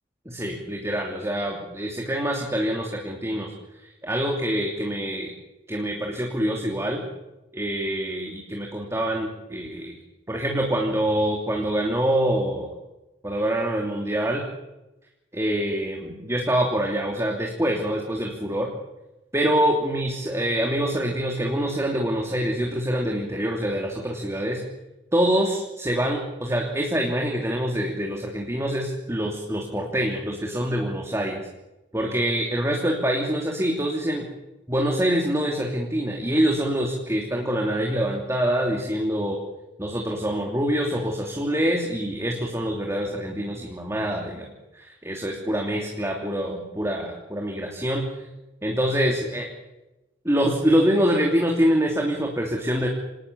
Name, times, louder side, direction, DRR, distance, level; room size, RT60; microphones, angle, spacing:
voice 1, 0.2-3.5 4.0-5.3 5.7-7.0 7.5-10.0 10.3-12.7 13.2-14.4 15.3-18.7 19.3-24.6 25.1-31.4 31.9-34.3 34.7-39.4 39.8-44.5 44.7-48.1 48.6-49.5 50.2-52.9, equal, 15° right, 0 dB, 3.0 m, -25 dB
27.5 x 19.0 x 8.6 m, 0.99 s
head